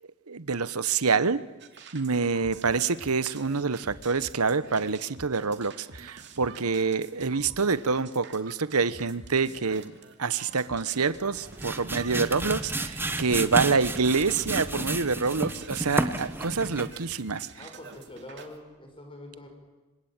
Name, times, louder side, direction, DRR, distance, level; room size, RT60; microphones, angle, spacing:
voice 1, 0.3-1.4 1.9-9.9 10.2-17.5, right 4 dB, 85° right, 15 dB, 1.1 m, -26 dB
sound 1, 1.6-18.6, right 4 dB, 50° right, 2.7 m, -48 dB
sound 2, 11.2-17.0, right 2 dB, 10° right, 1.0 m, -32 dB
voice 2, 17.6-19.5, left 1 dB, 25° left, 3 dB, 6.0 m, -44 dB
26.5 x 25.0 x 8.9 m, 1.1 s
head